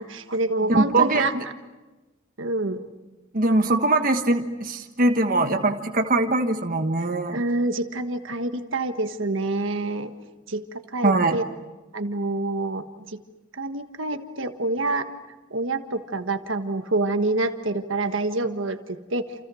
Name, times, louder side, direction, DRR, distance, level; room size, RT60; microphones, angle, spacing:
voice 1, 0.0-1.3 2.4-2.8 7.3-10.1 10.5-11.4 11.9-13.2 13.5-15.1 15.5-19.3, right 2 dB, 70° right, 7 dB, 1.5 m, -27 dB
voice 2, 0.7-1.4 3.3-7.4 11.0-11.4, right 2 dB, 45° right, 5 dB, 1.4 m, -22 dB
28.5 x 28.5 x 6.3 m, 1.1 s
head